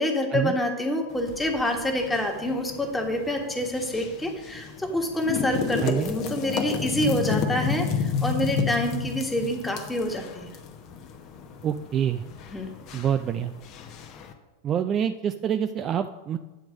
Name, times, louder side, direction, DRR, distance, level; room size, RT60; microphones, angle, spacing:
voice 1, 0.0-10.5 12.5-12.7, left 1 dB, 10° left, 2 dB, 1.4 m, -27 dB
sound 1, 1.1-14.3, left 5 dB, 35° left, 0.9 m, -32 dB
voice 2, 5.8-6.1 11.6-12.2 12.9-13.5 14.6-16.4, right 9 dB, 30° right, 9 dB, 0.3 m, -26 dB
9.0 x 4.6 x 6.2 m, 1.1 s
figure-of-eight pair, 90°, 0 cm